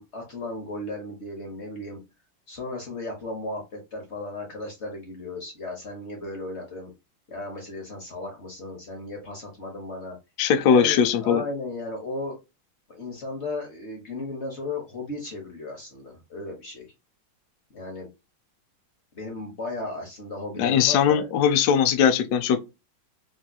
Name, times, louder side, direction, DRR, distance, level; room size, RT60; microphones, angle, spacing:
voice 1, 0.0-2.0 2.5-6.9 7.3-10.2 10.6-12.4 12.9-16.9 17.7-18.1 19.1-21.3, left 2 dB, 55° left, 0.8 m, -35 dB
voice 2, 10.4-11.4 20.6-22.6, left 8 dB, 90° left, 0.8 m, -20 dB
3.5 x 2.7 x 2.3 m
omnidirectional pair, 2.3 m